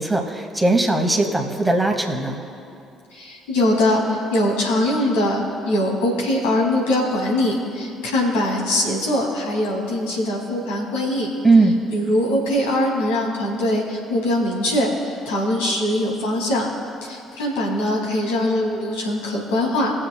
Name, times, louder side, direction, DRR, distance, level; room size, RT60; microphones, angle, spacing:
voice 1, 0.0-2.4 11.4-11.8, right 2 dB, 10° right, 2 dB, 1.6 m, -18 dB
voice 2, 3.1-11.3 11.9-16.7 17.0-20.0, left 1 dB, 75° left, -3 dB, 2.4 m, -22 dB
20.5 x 7.6 x 2.2 m, 2.6 s
figure-of-eight pair, 50°, 0 cm